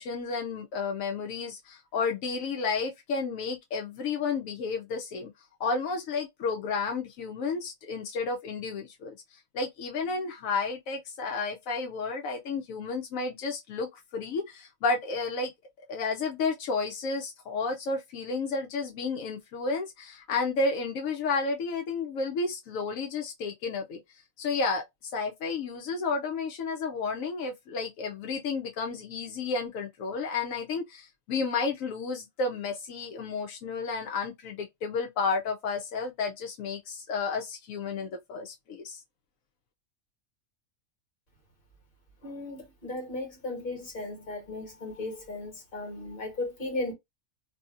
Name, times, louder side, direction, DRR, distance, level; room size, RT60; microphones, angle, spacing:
voice 1, 0.0-5.3 5.6-15.5 15.9-24.0 24.4-39.0, left 4 dB, 85° left, 1.0 m, -32 dB
voice 2, 42.2-46.9, left 2 dB, 45° left, 1.5 m, -36 dB
2.7 x 2.7 x 2.4 m
omnidirectional pair, 1.4 m